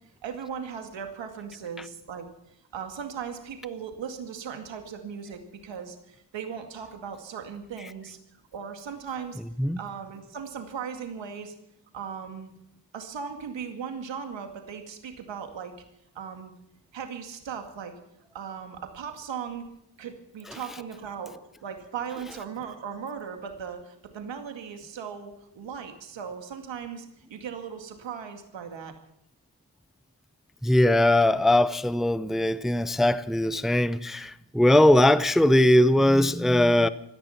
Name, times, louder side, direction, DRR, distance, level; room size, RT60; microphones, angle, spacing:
voice 1, 0.2-9.4 9.8-11.5 11.9-12.5 12.9-15.8 16.1-16.5 16.9-18.0 18.3-19.7 20.0-21.4 21.6-28.9, right 7 dB, 80° right, 2.2 m, -38 dB
voice 2, 30.6-36.9, left 1 dB, ahead, 0.6 m, -20 dB
16.5 x 14.5 x 5.8 m
cardioid pair, 75°, 44 cm